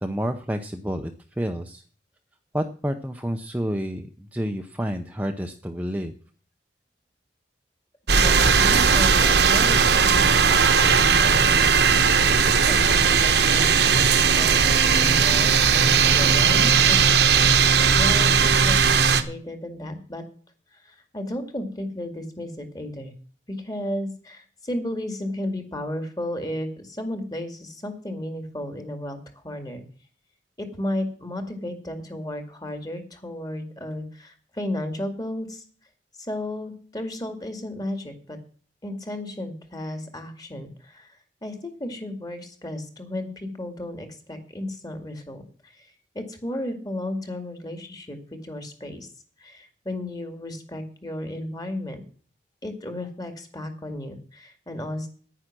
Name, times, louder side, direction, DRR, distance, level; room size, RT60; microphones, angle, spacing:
voice 1, 0.0-1.1 1.4-1.8 2.5-6.1, equal, 10° right, 4 dB, 0.7 m, -29 dB
sound 1, 8.1-19.2, right 6 dB, 65° right, 1.2 m, -18 dB
voice 2, 8.2-10.1 10.4-12.0 12.7-14.1 14.3-17.2 18.0-20.2 20.7-23.1 23.6-29.2 29.4-29.8 30.6-35.6 36.2-38.4 38.8-41.2 41.4-45.7 46.1-49.1 49.4-52.0 52.6-55.1, left 1 dB, 20° left, 6 dB, 2.1 m, -34 dB
10.0 x 9.9 x 6.1 m, 0.43 s
head